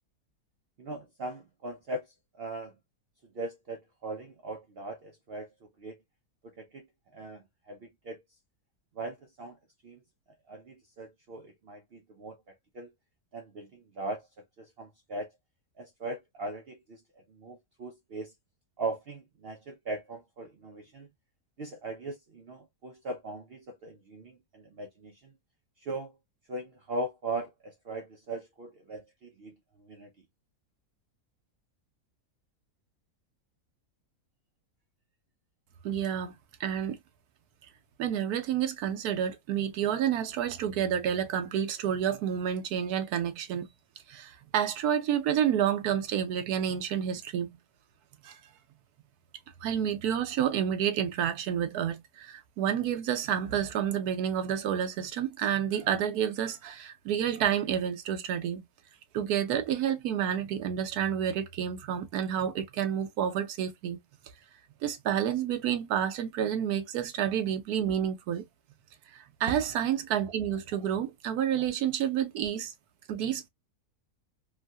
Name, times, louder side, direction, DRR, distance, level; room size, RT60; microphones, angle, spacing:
voice 1, 0.8-2.0 2.4-2.7 3.3-5.5 5.8-6.0 6.4-6.8 7.1-8.2 9.0-9.6 9.8-10.0 10.5-12.9 13.3-14.3 14.6-15.3 15.8-17.0 17.3-18.3 18.8-21.1 21.6-25.3 25.8-26.1 26.5-29.6 29.8-30.1 69.5-69.6, right 2 dB, 65° right, 0.6 m, -39 dB
voice 2, 35.8-37.0 38.0-43.7 44.1-47.5 48.2-48.3 49.6-58.6 59.1-64.0 64.8-68.4 69.4-72.7 73.1-73.5, right 9 dB, 80° right, 1.2 m, -29 dB
3.2 x 2.6 x 2.2 m
omnidirectional pair, 1.6 m